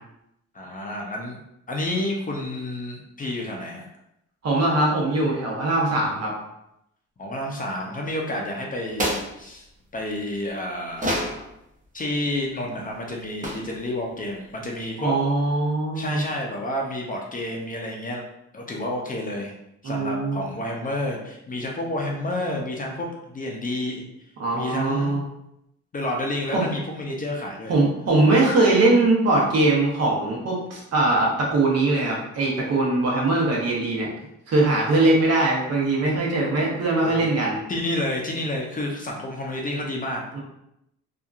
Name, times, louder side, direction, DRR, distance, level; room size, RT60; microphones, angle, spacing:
voice 1, 0.5-1.4 1.7-3.9 7.2-9.7 9.9-11.3 11.9-15.1 15.9-18.2 18.5-19.5 19.8-24.0 24.5-25.2 25.9-27.8 37.0-37.2 37.7-40.4, left 1 dB, 30° left, -1 dB, 0.5 m, -30 dB
voice 2, 4.4-6.3 15.0-16.2 19.8-20.4 24.4-25.2 26.5-26.6 27.7-34.1 34.5-37.6 40.3-40.4, right 2 dB, 55° right, -2 dB, 1.0 m, -21 dB
sound 1, 8.9-9.4 10.9-11.4 13.4-13.8, equal, 25° right, 0.7 m, -27 dB
2.8 x 2.4 x 2.4 m, 0.81 s
cardioid pair, 90°, 30 cm